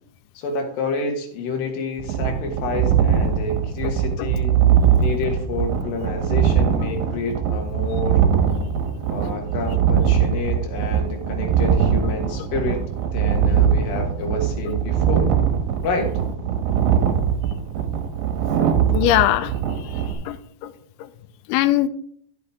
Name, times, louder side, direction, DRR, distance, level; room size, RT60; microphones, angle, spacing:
voice 1, 0.3-4.5 5.0-8.2 9.1-12.8 13.1-15.3 15.8-16.1, left 3 dB, 65° left, 2 dB, 2.5 m, -28 dB
sound 1, 2.0-20.1, right 8 dB, 75° right, 3.5 m, -21 dB
voice 2, 18.6-19.5 20.3-20.7 21.0-21.1 21.5-21.9, left 14 dB, 85° left, 13 dB, 2.9 m, -21 dB
11.5 x 8.5 x 3.5 m, 0.63 s
omnidirectional pair, 5.4 m